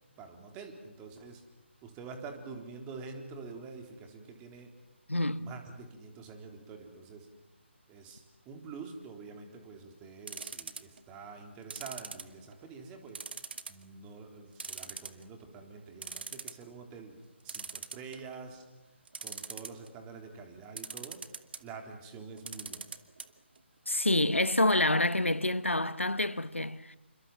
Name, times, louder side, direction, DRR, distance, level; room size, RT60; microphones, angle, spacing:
voice 1, 0.2-1.4 1.8-4.7 5.4-7.3 7.9-13.2 13.7-17.2 17.4-18.6 18.9-21.2 21.6-22.9, right 4 dB, 15° right, 3.7 m, -47 dB
voice 2, 5.1-5.5 23.9-27.0, left 1 dB, 90° left, 1.2 m, -27 dB
sound 1, 10.3-11.0 11.7-12.7 13.1-13.8 14.2-14.3 14.6-15.4 15.8-15.9 16.0-16.6 17.5-18.4 19.1-19.9 20.8-21.6 22.4-23.3 23.6-23.7 23.9-24.0, right 5 dB, 55° right, 1.8 m, -41 dB
28.5 x 26.0 x 7.6 m
figure-of-eight pair, 145°, 7 cm